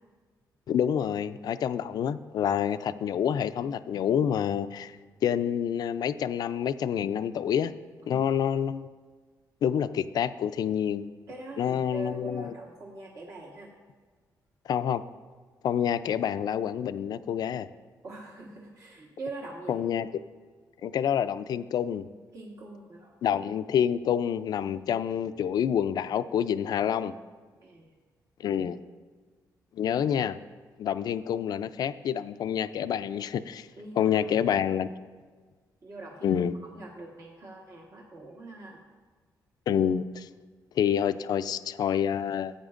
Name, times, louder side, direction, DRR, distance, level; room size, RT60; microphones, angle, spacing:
voice 1, 0.7-5.0 5.2-7.7 8.1-8.9 9.6-11.1 11.6-12.5 14.7-15.0 15.6-17.7 19.7-20.1 20.8-22.1 23.2-27.1 28.4-28.8 29.7-30.4 30.8-33.7 34.0-34.9 36.2-36.5 39.7-40.3 40.8-42.5, left 9 dB, 65° left, 13 dB, 0.4 m, -27 dB
voice 2, 11.3-13.7 18.0-19.9 20.8-21.0 22.3-23.2 27.6-27.9 33.8-34.3 35.8-36.3 36.6-38.8, right 2 dB, 50° right, -2 dB, 1.4 m, -43 dB
14.0 x 8.8 x 2.5 m, 1.5 s
cardioid pair, 90°, 7 cm